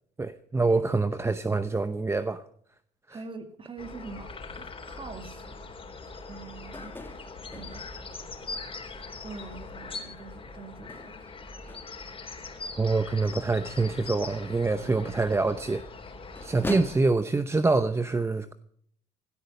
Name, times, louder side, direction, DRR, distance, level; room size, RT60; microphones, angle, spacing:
voice 1, 0.2-2.4 3.1-3.2 12.7-15.8 16.4-18.5, right 3 dB, 15° right, 11 dB, 0.8 m, -26 dB
voice 2, 3.1-5.6 6.3-7.0 7.5-8.0 9.2-11.1 14.7-15.0, right 4 dB, 30° right, 8 dB, 2.5 m, -44 dB
sound 1, 3.8-17.0, left 3 dB, 30° left, 3.8 m, -42 dB
sound 2, 4.9-16.8, left 2 dB, 10° left, 1.8 m, -46 dB
17.0 x 13.0 x 5.3 m, 0.63 s
cardioid pair, 110°, 17 cm